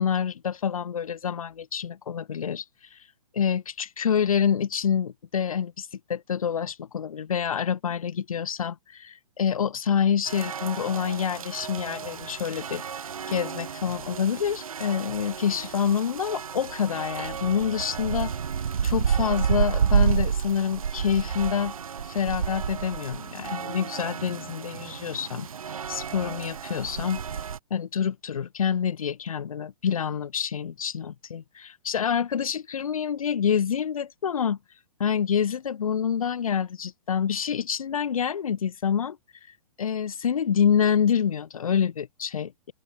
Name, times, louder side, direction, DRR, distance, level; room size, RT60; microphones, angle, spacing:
voice 1, 0.0-2.6 2.9-3.0 3.3-12.8 13.3-18.3 18.8-21.7 22.1-25.5 25.9-27.2 27.7-34.6 35.0-39.2 39.8-42.7, left 7 dB, 85° left, 0.7 m, -27 dB
sound 1, 10.3-27.6, right 7 dB, 85° right, 1.0 m, -30 dB
open air
hypercardioid pair, 130°, 18 cm